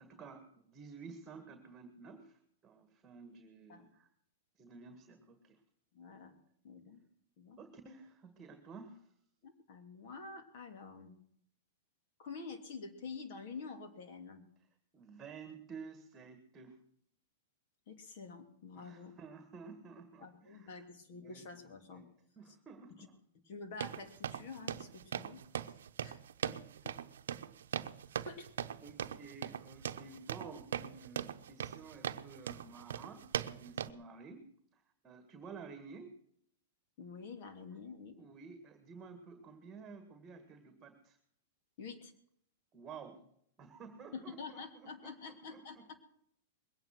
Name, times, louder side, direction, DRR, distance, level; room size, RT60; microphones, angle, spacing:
voice 1, 0.0-4.1 4.6-5.6 7.6-9.1 14.9-16.8 18.8-20.8 21.1-21.5 21.9-22.1 22.4-23.2 28.8-36.2 38.2-41.2 42.7-43.3 43.6-45.2 45.5-45.9, right 5 dB, 20° right, 8 dB, 1.8 m, -52 dB
voice 2, 5.9-6.4 6.6-7.0 7.4-7.6 9.4-11.2 12.2-14.4 17.9-19.1 20.2-22.0 23.0-23.1 23.4-25.7 26.0-26.6 26.8-27.0 28.2-28.5 37.0-38.2 41.8-42.1 44.1-45.9, left 4 dB, 55° left, 7 dB, 2.8 m, -48 dB
sound 1, 23.8-33.9, right 9 dB, 85° right, 0.8 m, -40 dB
21.5 x 9.1 x 6.0 m, 0.68 s
hypercardioid pair, 140°, 0 cm